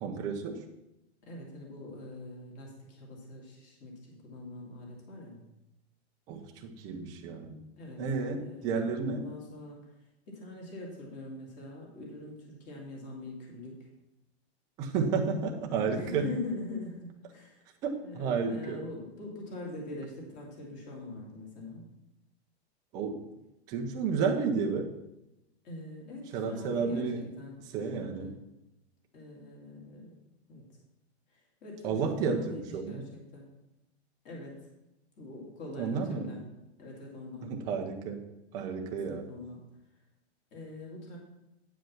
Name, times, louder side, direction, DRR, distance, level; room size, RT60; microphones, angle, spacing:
voice 1, 0.0-0.6 6.3-7.6 8.0-9.3 14.8-16.3 17.8-18.8 22.9-23.2 23.7-24.9 26.3-27.2 27.7-28.3 31.8-33.0 35.8-36.3 37.4-38.3 38.5-39.2, right 5 dB, 10° right, 3 dB, 0.5 m, -31 dB
voice 2, 1.2-5.4 7.8-8.1 8.4-9.8 10.3-13.9 15.9-17.7 18.0-21.9 25.6-28.3 29.1-30.1 30.5-30.6 31.3-33.5 34.2-34.7 35.2-36.4 36.8-37.5 38.9-39.6 40.5-41.2, left 2 dB, 20° left, -1 dB, 2.1 m, -43 dB
9.2 x 5.2 x 5.8 m, 0.92 s
supercardioid pair, 170°, 33 cm